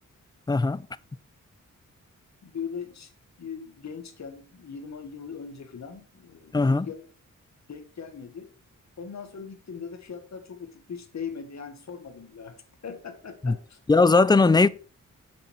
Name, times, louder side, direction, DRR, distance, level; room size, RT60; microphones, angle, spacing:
voice 1, 0.5-0.8 6.5-6.9 13.4-13.6 13.9-14.7, left 3 dB, 15° left, 0.4 m, -19 dB
voice 2, 2.4-3.1 3.4-7.1 7.7-8.5 9.0-12.6 12.8-13.8, left 6 dB, 60° left, 1.7 m, -39 dB
7.8 x 7.0 x 4.4 m
wide cardioid pair, 110°, 31 cm